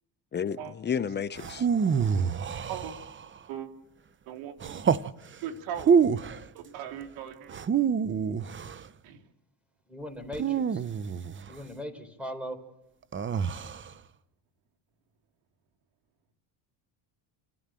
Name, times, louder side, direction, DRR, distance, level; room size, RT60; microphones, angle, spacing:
voice 1, 0.3-1.7, left 7 dB, 20° left, 0.7 m, -31 dB
sound 1, 1.4-3.4 4.6-5.1 5.8-6.4 7.5-8.8 10.3-11.5 13.1-13.9, right 6 dB, 25° right, 0.8 m, -27 dB
voice 2, 4.3-4.8 5.4-6.3 6.5-7.5 9.0-9.2, right 9 dB, 75° right, 3.0 m, -39 dB
voice 3, 9.9-10.8 11.5-12.6, equal, 5° right, 4.4 m, -39 dB
29.5 x 13.0 x 7.6 m
supercardioid pair, 100°, 48 cm